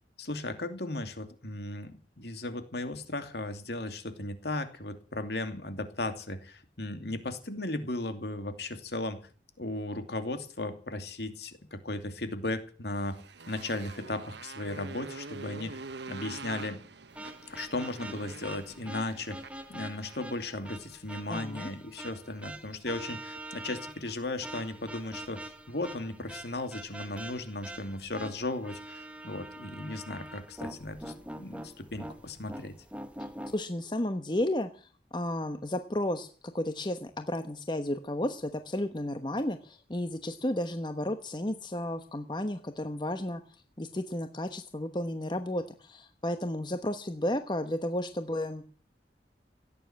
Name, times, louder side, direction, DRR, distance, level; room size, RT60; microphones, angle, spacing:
voice 1, 0.2-9.2 9.6-13.2 13.5-15.8 16.1-16.8 17.5-19.4 19.7-32.7, left 2 dB, 65° left, 8 dB, 2.7 m, -36 dB
Motorcycle, 12.9-20.3, right 3 dB, 75° right, 1.0 m, -45 dB
sound 1, 17.1-33.6, right 1 dB, 5° right, 1.4 m, -44 dB
voice 2, 21.3-21.7 33.5-36.3 36.5-43.4 43.8-48.6, left 1 dB, 25° left, 8 dB, 1.1 m, -33 dB
17.0 x 9.6 x 8.8 m, 0.41 s
head